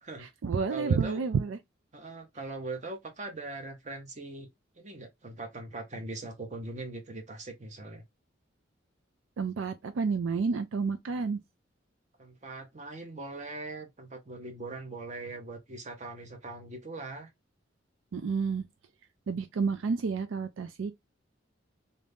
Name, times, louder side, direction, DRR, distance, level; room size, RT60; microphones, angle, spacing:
voice 1, 0.2-1.6 9.4-11.4 18.1-18.6 19.3-20.9, right 5 dB, 80° right, 0.4 m, -30 dB
voice 2, 0.7-1.2 1.9-4.5 4.8-8.0 12.2-17.3, right 2 dB, 35° right, 0.8 m, -41 dB
2.7 x 2.6 x 3.4 m
head